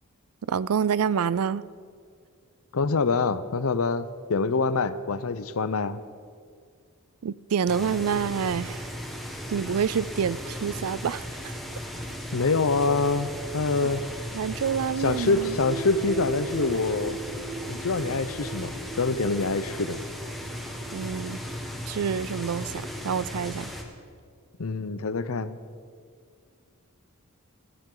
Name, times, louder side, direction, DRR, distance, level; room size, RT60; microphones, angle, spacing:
voice 1, 0.4-1.6 7.2-8.9 9.5-11.6 13.8-13.9 14.3-15.6 20.9-21.4 21.9-23.7, right 7 dB, 80° right, 0.4 m, -27 dB
voice 2, 2.7-6.0 12.3-14.1 15.0-17.2 17.7-20.0 24.6-25.6, left 3 dB, 70° left, 0.7 m, -25 dB
sound 1, 7.7-23.8, equal, ahead, 1.5 m, -36 dB
sound 2, 15.6-21.4, right 3 dB, 50° right, 1.7 m, -39 dB
18.0 x 15.0 x 3.9 m
head